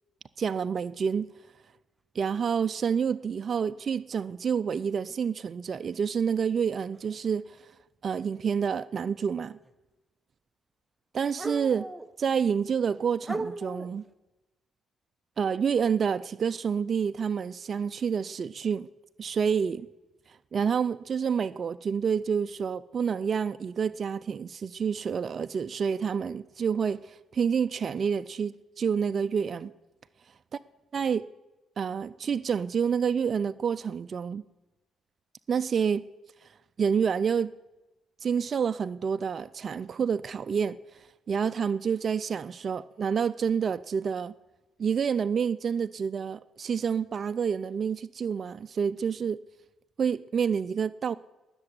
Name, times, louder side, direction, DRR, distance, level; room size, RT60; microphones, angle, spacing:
voice 1, 0.4-1.3 2.1-7.7 8.0-9.6 11.1-11.9 12.2-14.1 15.4-18.9 19.2-19.9 20.3-29.7 30.9-31.2 31.8-34.4 35.5-36.0 36.4-36.5 36.8-37.5 38.2-44.3 44.8-49.4 50.0-51.1, right 6 dB, 50° right, 12 dB, 0.4 m, -28 dB
sound 1, 4.3-4.4 5.8-5.9 6.9-7.1 9.6-9.7 11.4-12.2 12.8-12.9 13.3-14.1, right 2 dB, 10° right, 0.9 m, -36 dB
18.5 x 6.8 x 10.0 m, 1.1 s
cardioid pair, 90°, 0 cm